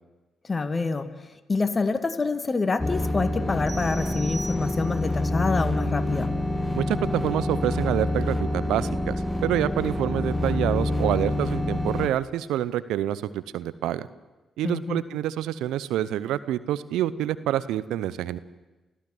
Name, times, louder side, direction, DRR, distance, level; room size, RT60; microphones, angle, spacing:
voice 1, 0.4-1.1 1.5-6.3 14.6-15.0, left 4 dB, 35° left, 10 dB, 2.1 m, -26 dB
sound 1, 2.8-12.1, left 1 dB, 10° left, 1.9 m, -27 dB
sound 2, 3.7-5.2, right 3 dB, 55° right, 5.4 m, -41 dB
voice 2, 6.7-9.2 9.4-14.1 14.6-18.4, right 12 dB, 80° right, 16 dB, 0.7 m, -27 dB
29.0 x 15.0 x 7.8 m, 1.1 s
hypercardioid pair, 45°, 0 cm